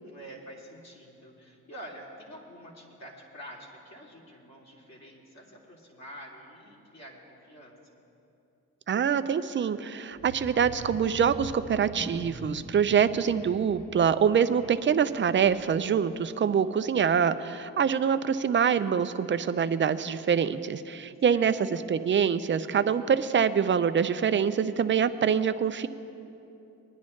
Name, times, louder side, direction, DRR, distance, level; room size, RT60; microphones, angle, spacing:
voice 1, 0.0-8.0 21.3-21.5, equal, 45° left, -3 dB, 2.9 m, -47 dB
voice 2, 8.9-25.9, right 7 dB, 35° right, 11 dB, 0.5 m, -25 dB
sound 1, 10.1-15.9 16.3-16.5 16.8-16.9, equal, 20° left, 1.6 m, -44 dB
21.0 x 10.5 x 3.2 m, 2.8 s
cardioid pair, 75°, 36 cm